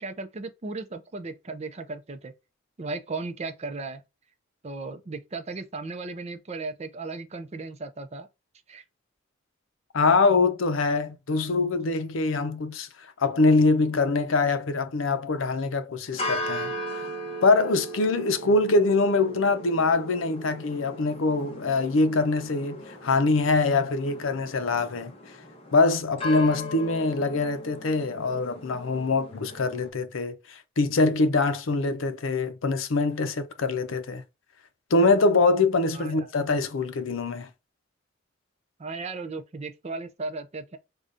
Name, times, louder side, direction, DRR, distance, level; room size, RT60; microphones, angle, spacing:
voice 1, 0.0-2.3 2.8-4.0 4.6-8.3 8.7-8.8 18.4-18.6 35.9-36.3 38.8-40.8, right 3 dB, 35° right, 0.5 m, -36 dB
voice 2, 9.9-12.9 13.2-16.7 17.4-25.1 25.7-30.3 30.8-34.2 34.9-37.5, left 3 dB, 80° left, 0.6 m, -24 dB
sound 1, 16.1-29.9, equal, 30° left, 0.9 m, -38 dB
4.9 x 2.3 x 2.6 m
head